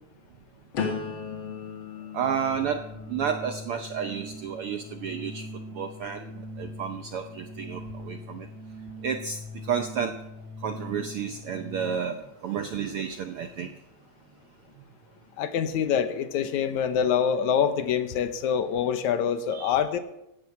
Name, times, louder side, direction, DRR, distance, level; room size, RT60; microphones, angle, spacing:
sound 1, 0.7-6.6 7.1-7.6, left 6 dB, 50° left, 1.9 m, -38 dB
Organ, 2.0-12.3, equal, 5° left, 5.3 m, -42 dB
voice 1, 2.1-5.5 5.7-8.5 9.0-10.2 10.6-13.7 19.5-19.8, right 7 dB, 75° right, 7 dB, 1.3 m, -31 dB
voice 2, 15.4-20.0, left 8 dB, 75° left, 10 dB, 2.3 m, -25 dB
15.5 x 11.0 x 5.8 m, 0.86 s
omnidirectional pair, 3.5 m